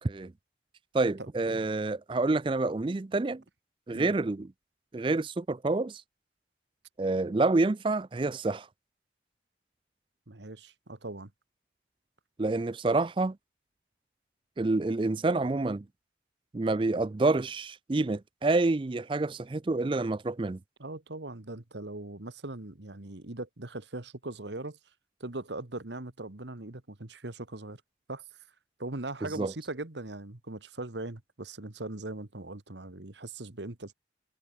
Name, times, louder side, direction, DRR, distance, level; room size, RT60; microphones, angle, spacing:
voice 1, 0.9-3.4 3.9-4.5 4.9-6.0 7.0-8.7 12.4-13.3 14.6-15.8 16.5-20.6 29.4-29.5, right 2 dB, 25° right, 0.4 m, -28 dB
voice 2, 10.3-11.3 20.8-24.8 25.2-27.8 28.1-28.2 28.8-33.9, right 2 dB, 75° right, 1.7 m, -40 dB
head